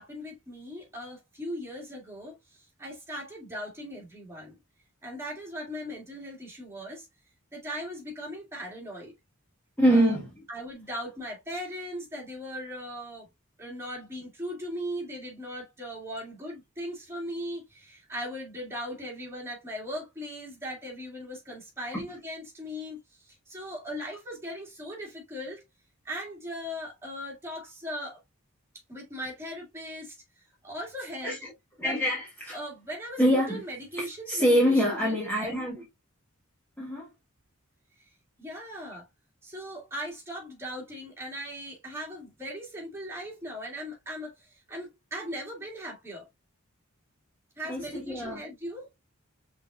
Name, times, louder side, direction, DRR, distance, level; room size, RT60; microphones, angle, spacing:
voice 1, 0.0-4.5 5.0-7.1 7.5-9.1 9.9-10.2 10.5-13.3 13.6-25.6 26.0-28.2 28.9-30.1 30.6-31.4 31.8-32.0 32.5-35.5 38.4-39.1 39.4-46.3 47.6-48.9, equal, 10° right, 2.1 m, -39 dB
voice 2, 9.8-10.3 31.2-31.4 31.8-32.6 33.2-33.6 34.0-35.8 36.8-37.1 47.7-48.4, equal, 10° left, 1.2 m, -25 dB
5.5 x 3.7 x 2.3 m
head